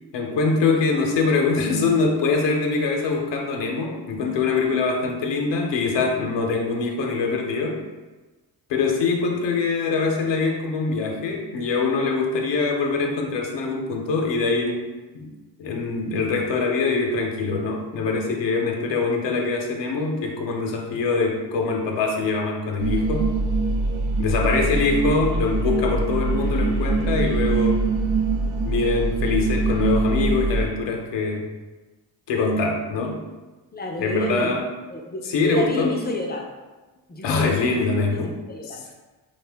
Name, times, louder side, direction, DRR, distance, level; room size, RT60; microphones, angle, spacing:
voice 1, 0.1-7.8 8.7-15.3 15.6-23.3 24.2-27.8 28.6-31.5 32.3-33.2 34.0-34.7 35.2-36.0 37.2-38.3, left 4 dB, 80° left, 1 dB, 0.6 m, -23 dB
sound 1, 22.8-30.7, right 3 dB, 65° right, 0.5 m, -23 dB
voice 2, 33.7-34.6 34.9-36.5 37.1-37.8 38.1-38.9, left 2 dB, 25° left, 1 dB, 0.4 m, -30 dB
2.5 x 2.1 x 3.2 m, 1.2 s
cardioid pair, 65°, 42 cm